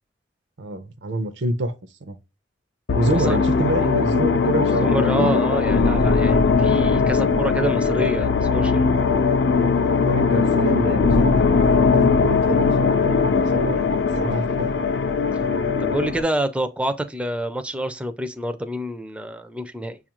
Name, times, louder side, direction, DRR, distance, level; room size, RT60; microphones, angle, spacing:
voice 1, 0.6-1.7 2.0-2.2 2.9-5.3 9.5-9.7 10.0-13.8 14.2-14.7, right 2 dB, 75° right, 0.6 m, -27 dB
sound 1, 2.9-16.2, left 4 dB, 65° left, 0.5 m, -19 dB
voice 2, 4.8-8.9 15.8-20.0, right 1 dB, 5° right, 0.4 m, -27 dB
6.8 x 2.4 x 2.9 m
head